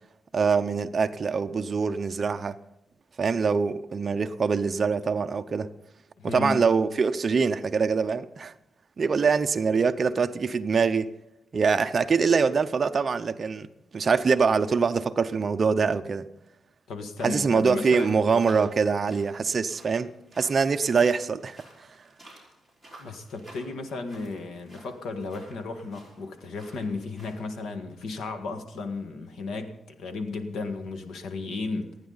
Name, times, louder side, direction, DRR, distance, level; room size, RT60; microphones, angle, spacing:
voice 1, 0.3-2.6 3.2-5.7 6.2-8.5 9.0-11.1 11.5-13.7 13.9-16.3 17.2-21.6, right 5 dB, 35° right, 0.6 m, -24 dB
voice 2, 6.2-6.6 16.9-18.1 23.0-32.0, left 3 dB, 85° left, 1.6 m, -34 dB
sound 1, 17.8-27.7, right 1 dB, 10° left, 5.2 m, -53 dB
27.5 x 9.6 x 4.0 m
wide cardioid pair, 160°, 0 cm